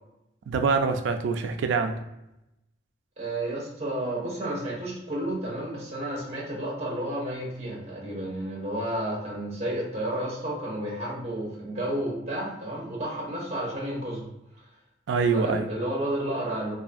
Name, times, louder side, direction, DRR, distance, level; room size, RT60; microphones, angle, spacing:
voice 1, 0.5-2.0 15.1-15.7, right 4 dB, 85° right, 7 dB, 0.3 m, -25 dB
voice 2, 3.2-14.3 15.3-16.8, right 1 dB, 35° right, -3 dB, 0.6 m, -31 dB
2.5 x 2.4 x 2.5 m, 0.89 s
head